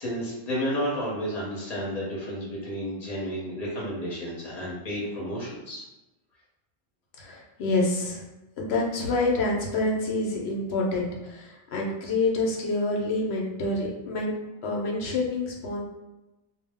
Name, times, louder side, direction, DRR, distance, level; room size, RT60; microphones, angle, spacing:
voice 1, 0.0-5.8, equal, 40° left, -5 dB, 1.0 m, -31 dB
voice 2, 7.2-8.2 8.6-14.3 14.6-15.8, left 2 dB, 85° left, -1 dB, 0.9 m, -27 dB
2.3 x 2.0 x 3.4 m, 1.0 s
omnidirectional pair, 1.1 m